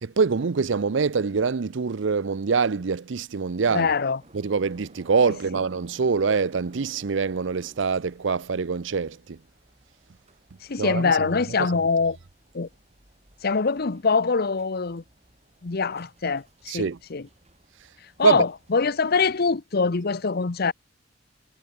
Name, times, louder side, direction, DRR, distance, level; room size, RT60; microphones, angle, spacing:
voice 1, 0.0-3.9 4.3-9.4 10.8-11.3 16.7-17.0 18.2-18.5, right 5 dB, 75° right, 0.6 m, -24 dB
voice 2, 3.7-4.2 10.6-12.2 12.5-12.7 13.4-15.0 15.6-17.3 18.2-20.7, left 4 dB, 55° left, 0.8 m, -24 dB
sound 1, 4.2-19.4, right 1 dB, 35° right, 5.2 m, -57 dB
head